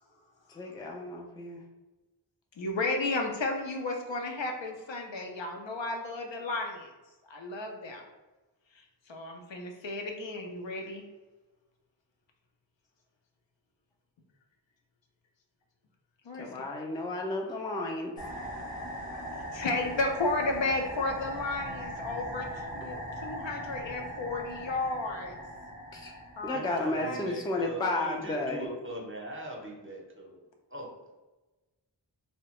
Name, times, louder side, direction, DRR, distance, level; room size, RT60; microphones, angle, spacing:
voice 1, 0.5-1.6 16.3-18.1 25.9-26.1 26.4-28.7, left 2 dB, 10° left, 1 dB, 0.3 m, -33 dB
voice 2, 2.6-6.9 7.3-8.0 9.1-11.1 16.3-16.5 19.5-22.5 22.7-25.4 26.4-26.7 27.0-27.2, left 2 dB, 85° left, 2 dB, 0.5 m, -33 dB
sound 1, 18.2-27.0, equal, 70° left, 0.9 m, -40 dB
voice 3, 26.5-30.4 30.7-31.1, right 1 dB, 30° right, -1 dB, 0.6 m, -41 dB
2.7 x 2.1 x 3.0 m, 1.1 s
wide cardioid pair, 40°, 44 cm